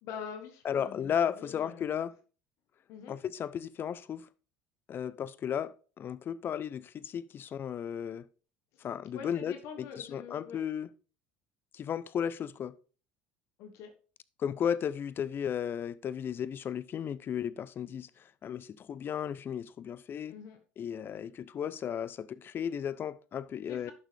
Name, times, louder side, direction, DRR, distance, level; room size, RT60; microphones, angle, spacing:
voice 1, 0.0-2.0 2.9-3.1 8.7-8.8 9.1-10.6 13.6-13.9 20.3-20.6 23.7-23.9, left 7 dB, 60° left, 1.4 m, -45 dB
voice 2, 0.6-2.1 3.1-4.3 4.9-8.2 8.8-10.9 11.7-12.7 14.4-20.3 20.8-23.9, left 8 dB, 40° left, 0.7 m, -35 dB
11.0 x 6.5 x 3.4 m
hypercardioid pair, 75°, 6 cm